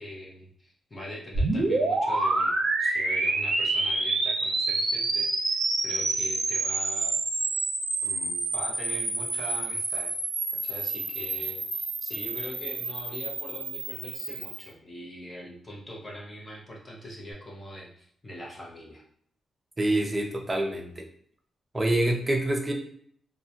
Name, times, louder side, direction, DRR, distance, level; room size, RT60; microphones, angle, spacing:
voice 1, 0.0-5.6 5.8-7.2 8.0-10.1 10.6-19.0, left 1 dB, 25° left, -3 dB, 0.6 m, -42 dB
sound 1, 1.3-14.7, right 2 dB, 70° right, 0.5 m, -28 dB
voice 2, 19.8-21.1 21.7-22.7, right 1 dB, 20° right, 1 dB, 0.4 m, -26 dB
2.2 x 2.1 x 2.7 m, 0.62 s
cardioid pair, 110°, 0 cm